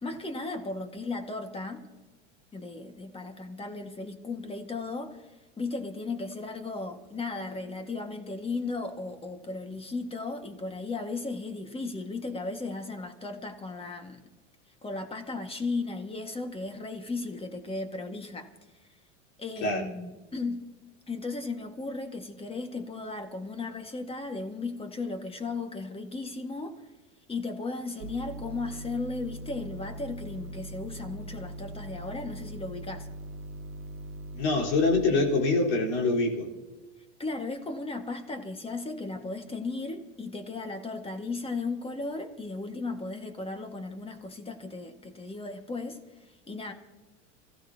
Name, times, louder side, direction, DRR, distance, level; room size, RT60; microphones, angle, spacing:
voice 1, 0.0-1.8 2.5-14.2 14.8-18.5 19.4-20.6 21.1-26.8 27.3-33.1 37.2-46.7, left 3 dB, 15° left, 6 dB, 1.8 m, -36 dB
sound 1, 28.0-35.0, right 1 dB, 75° right, 1.5 m, -41 dB
voice 2, 34.3-36.5, left 3 dB, 70° left, -2 dB, 4.3 m, -25 dB
26.5 x 15.0 x 2.9 m, 1.2 s
supercardioid pair, 110°, 37 cm